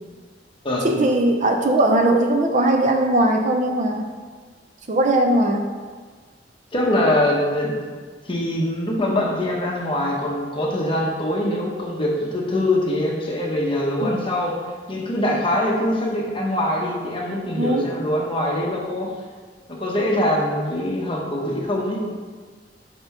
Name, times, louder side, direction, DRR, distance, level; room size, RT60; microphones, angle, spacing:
voice 1, 0.8-4.1 4.9-5.7 14.0-14.2 17.6-17.8, right 1 dB, 45° right, 4 dB, 0.5 m, -19 dB
voice 2, 6.7-7.7 8.3-14.6 14.9-19.1 19.7-22.0, left 1 dB, 30° left, -2 dB, 1.0 m, -23 dB
4.5 x 4.1 x 5.4 m, 1.5 s
head